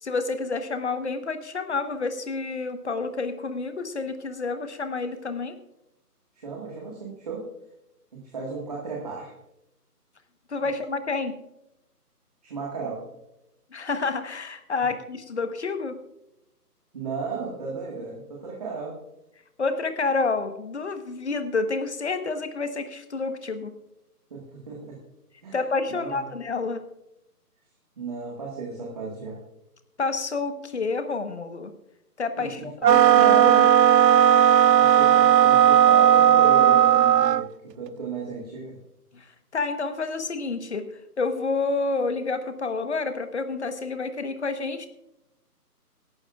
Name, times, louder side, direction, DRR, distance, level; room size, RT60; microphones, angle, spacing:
voice 1, 0.0-5.6 10.5-11.4 13.7-16.0 19.6-23.7 25.5-26.8 30.0-31.7 32.2-33.7 39.1-39.3 39.5-40.9 41.2-44.9, left 4 dB, 45° left, 9 dB, 1.2 m, -29 dB
voice 2, 6.4-7.4 8.1-9.3 12.4-13.0 16.9-18.9 24.3-25.0 25.4-25.5 25.9-26.3 28.0-29.4 32.4-32.7 34.7-37.5 37.7-38.8, right 4 dB, 25° right, -2 dB, 1.7 m, -35 dB
sound 1, 32.8-37.5, right 10 dB, 85° right, 0.6 m, -16 dB
22.0 x 11.5 x 2.4 m, 0.86 s
hypercardioid pair, 165°, 47 cm